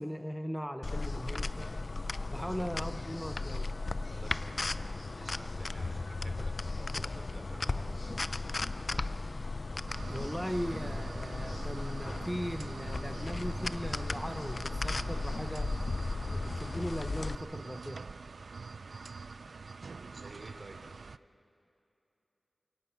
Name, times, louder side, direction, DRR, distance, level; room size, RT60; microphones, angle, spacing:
voice 1, 0.0-1.7 2.3-3.7 10.1-15.7 16.2-18.0, equal, 5° left, 7 dB, 0.7 m, -39 dB
sound 1, 0.8-17.3, left 3 dB, 55° left, 0.5 m, -36 dB
voice 2, 2.3-2.7 4.1-8.2 8.6-9.2 20.1-20.8, right 2 dB, 55° right, 3 dB, 3.0 m, -51 dB
sound 2, 9.9-21.2, right 4 dB, 85° right, 0.4 m, -44 dB
28.5 x 17.5 x 5.7 m, 2.7 s
wide cardioid pair, 85°, 0 cm